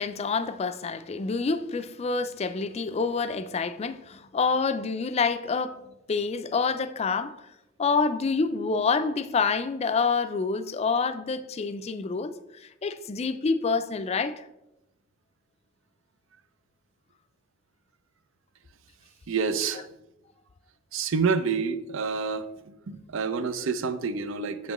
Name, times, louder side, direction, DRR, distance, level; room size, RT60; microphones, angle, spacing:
voice 1, 0.0-7.4 7.8-14.4, left 4 dB, 30° left, 0.3 m, -27 dB
voice 2, 19.3-19.8 20.9-24.7, right 5 dB, 80° right, 0.5 m, -28 dB
7.2 x 5.7 x 3.0 m
head